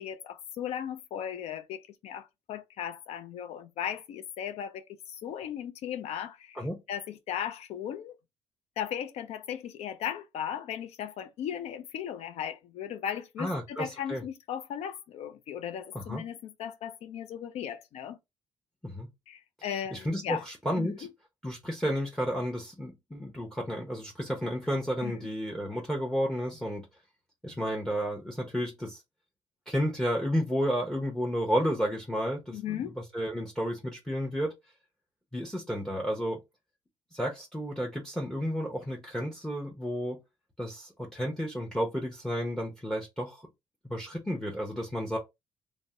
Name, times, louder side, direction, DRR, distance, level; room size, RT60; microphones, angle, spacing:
voice 1, 0.0-8.2 8.8-18.2 19.3-20.4 20.8-21.0 25.0-25.2 32.5-32.9, left 9 dB, 70° left, 0.4 m, -37 dB
voice 2, 13.4-14.2 15.9-16.2 18.8-19.1 19.6-21.1 21.4-26.9 27.4-29.0 29.7-34.5 35.3-36.4 37.1-40.2 40.6-43.5 43.9-45.2, equal, 5° left, 0.8 m, -32 dB
2.6 x 2.0 x 3.4 m
supercardioid pair, 60°, 11 cm